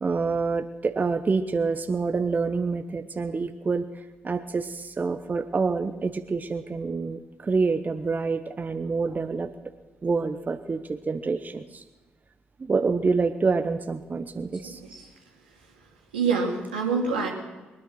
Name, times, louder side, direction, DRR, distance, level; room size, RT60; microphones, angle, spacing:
voice 1, 0.0-3.9 4.2-9.5 10.0-11.8 12.6-14.8, right 4 dB, 35° right, 8 dB, 1.0 m, -27 dB
voice 2, 14.6-15.1 16.1-17.3, right 5 dB, 85° right, -1 dB, 2.5 m, -26 dB
22.0 x 9.8 x 6.3 m, 1.2 s
figure-of-eight pair, 40°, 5 cm